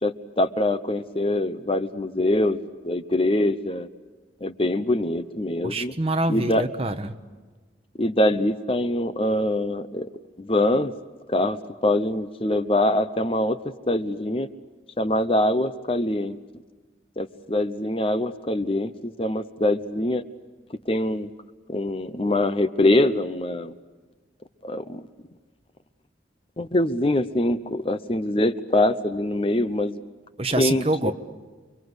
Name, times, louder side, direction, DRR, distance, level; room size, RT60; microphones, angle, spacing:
voice 1, 0.0-3.9 4.4-5.9 6.3-6.6 8.0-10.1 10.4-10.9 11.3-11.6 11.8-13.6 13.9-14.5 15.0-16.4 17.2-20.2 20.9-21.3 21.7-23.8 24.6-25.0 26.6-30.0 30.6-31.1, left 1 dB, 30° left, 11 dB, 0.9 m, -24 dB
voice 2, 5.6-7.1 30.4-31.1, right 2 dB, 30° right, 7 dB, 1.3 m, -25 dB
29.5 x 23.5 x 8.1 m, 1.4 s
head